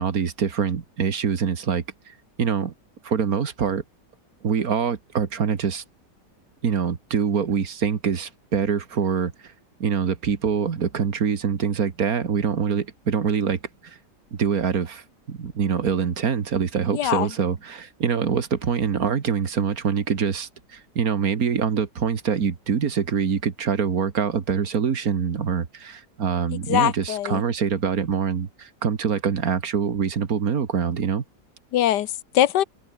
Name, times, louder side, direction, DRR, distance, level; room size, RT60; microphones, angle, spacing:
voice 1, 0.0-2.7 3.0-3.8 4.4-5.8 6.6-9.3 9.8-14.0 14.3-31.2, right 6 dB, 60° right, 2.1 m, -25 dB
voice 2, 16.9-17.3 26.7-27.4 31.7-32.6, left 12 dB, 85° left, 1.5 m, -22 dB
open air
omnidirectional pair, 1.8 m